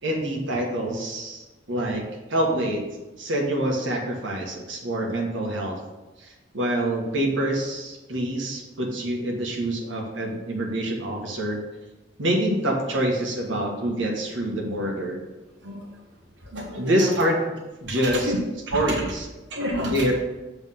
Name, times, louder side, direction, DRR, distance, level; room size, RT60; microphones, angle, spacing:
voice 1, 0.0-2.0 2.3-2.9 3.2-5.8 6.2-11.6 12.2-15.2 16.8-17.4 17.8-18.3 18.7-19.3 19.9-20.1, right 1 dB, 85° right, 0 dB, 1.3 m, -26 dB
voice 2, 15.6-16.0 16.4-17.2 17.8-18.4 18.7-19.0 19.5-20.1, equal, 65° right, -2 dB, 1.1 m, -31 dB
7.5 x 3.5 x 5.6 m, 1.1 s
head